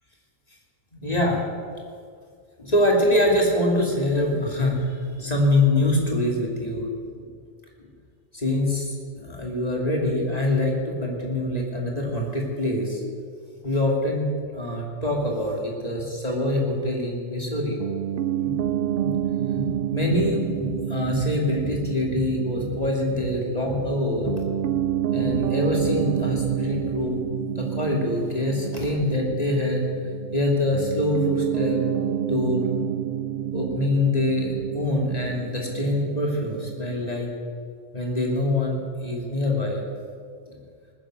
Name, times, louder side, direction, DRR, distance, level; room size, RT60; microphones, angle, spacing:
voice 1, 0.9-1.4 2.6-6.9 7.1-7.3 8.3-13.0 13.6-17.8 18.4-18.6 19.0-19.2 19.5-24.3 24.6-24.7 25.1-27.2 27.6-29.8 30.3-31.8 32.3-32.6 33.5-37.3 37.9-39.8, left 1 dB, 30° left, -1 dB, 2.9 m, -24 dB
Piano, 17.8-37.2, right 11 dB, 65° right, 0.6 m, -29 dB
19.5 x 10.0 x 6.5 m, 2.2 s
omnidirectional pair, 1.3 m